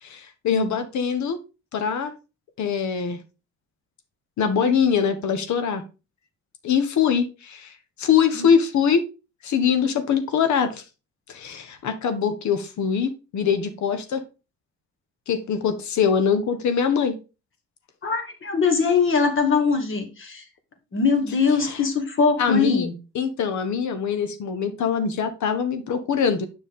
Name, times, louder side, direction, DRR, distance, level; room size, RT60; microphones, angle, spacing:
voice 1, 0.0-1.4 1.7-2.1 2.6-3.2 4.4-5.8 6.6-9.0 9.4-10.8 11.3-14.2 15.3-17.2 21.7-21.8 22.4-22.9 23.1-26.5, left 7 dB, 70° left, 1.2 m, -23 dB
voice 2, 18.0-20.5 20.9-22.9, left 5 dB, 40° left, 2.0 m, -22 dB
6.9 x 5.8 x 3.6 m
cardioid pair, 90°, 30 cm